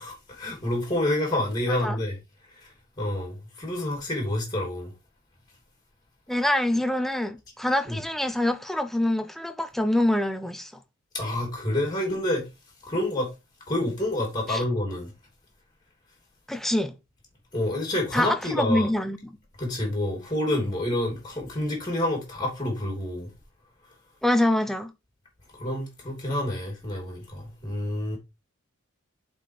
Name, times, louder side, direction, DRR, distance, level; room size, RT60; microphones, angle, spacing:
voice 1, 0.0-2.2 2.6-4.9 7.9-8.0 11.1-12.5 12.8-13.3 13.7-15.1 17.5-18.9 19.6-23.3 25.5-28.2, left 1 dB, 20° left, 3.0 m, -28 dB
voice 2, 6.3-10.7 14.5-14.6 16.5-16.9 18.1-19.2 24.2-24.9, left 1 dB, ahead, 0.7 m, -25 dB
7.9 x 4.4 x 4.9 m
head